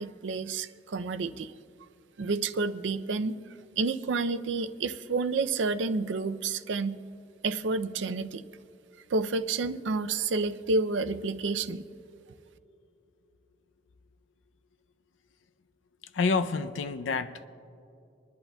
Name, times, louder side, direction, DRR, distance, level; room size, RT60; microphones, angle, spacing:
voice 1, 0.0-1.5 2.2-3.3 3.8-7.0 7.4-8.4 9.1-11.8, right 3 dB, 75° right, 0.5 m, -29 dB
voice 2, 16.1-17.5, left 4 dB, 90° left, 0.5 m, -28 dB
25.5 x 11.0 x 2.3 m
head